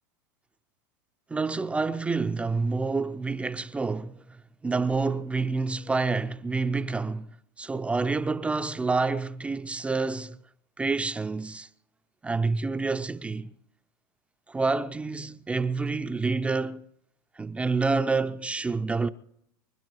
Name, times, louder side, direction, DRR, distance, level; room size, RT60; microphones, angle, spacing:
voice 1, 1.3-4.2 4.6-7.3 7.6-10.4 10.8-11.7 12.2-13.5 14.5-16.8 17.4-19.1, right 4 dB, 10° right, 0.6 m, -28 dB
24.5 x 11.5 x 4.8 m
supercardioid pair, 125°, 11 cm